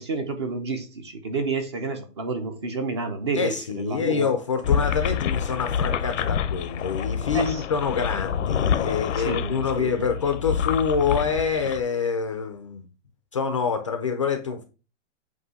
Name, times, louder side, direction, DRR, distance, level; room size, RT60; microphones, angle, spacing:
voice 1, 0.0-4.3 7.3-7.6 9.2-10.1, right 4 dB, 25° right, 0.5 m, -30 dB
voice 2, 3.4-12.9 13.3-14.7, left 6 dB, 25° left, 0.4 m, -26 dB
sound 1, 4.6-11.8, left 8 dB, 80° left, 0.7 m, -27 dB
8.0 x 2.7 x 4.7 m
hypercardioid pair, 175°, 36 cm